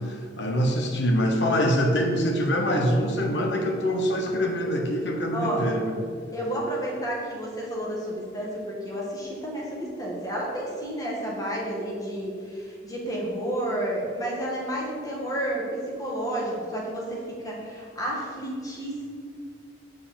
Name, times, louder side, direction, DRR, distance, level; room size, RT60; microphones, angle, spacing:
voice 1, 0.0-5.9, equal, 70° left, 2 dB, 1.1 m, -24 dB
voice 2, 5.3-5.6 6.3-19.1, right 1 dB, 20° left, -4 dB, 1.9 m, -31 dB
8.1 x 4.8 x 7.1 m, 2.3 s
head